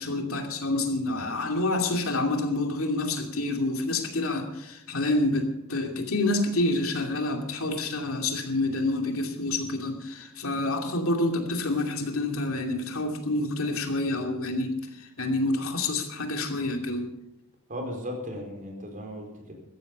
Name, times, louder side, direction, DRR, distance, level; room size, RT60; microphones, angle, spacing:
voice 1, 0.0-14.8 15.2-17.1, left 2 dB, 75° left, 4 dB, 2.6 m, -28 dB
voice 2, 17.7-19.5, equal, 40° right, 2 dB, 4.6 m, -36 dB
15.5 x 14.5 x 5.4 m, 0.86 s
head